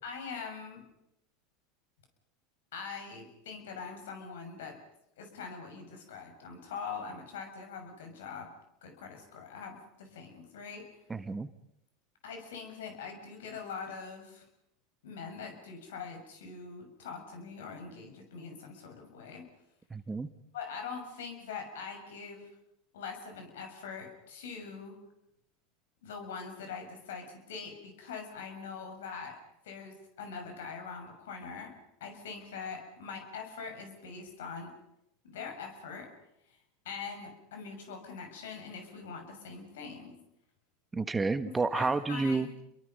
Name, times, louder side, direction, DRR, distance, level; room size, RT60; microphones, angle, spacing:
voice 1, 0.0-0.8 2.7-4.8 5.2-8.5 8.8-11.0 12.2-14.4 15.0-19.5 20.5-22.5 22.9-25.0 26.0-31.7 32.0-34.7 35.2-36.1 36.8-40.2 41.4-42.5, left 5 dB, 75° left, 5 dB, 6.5 m, -43 dB
voice 2, 11.1-11.5 19.9-20.3 40.9-42.5, right 3 dB, 15° right, 12 dB, 1.4 m, -30 dB
29.0 x 23.0 x 5.5 m, 0.82 s
hypercardioid pair, 90°, 0 cm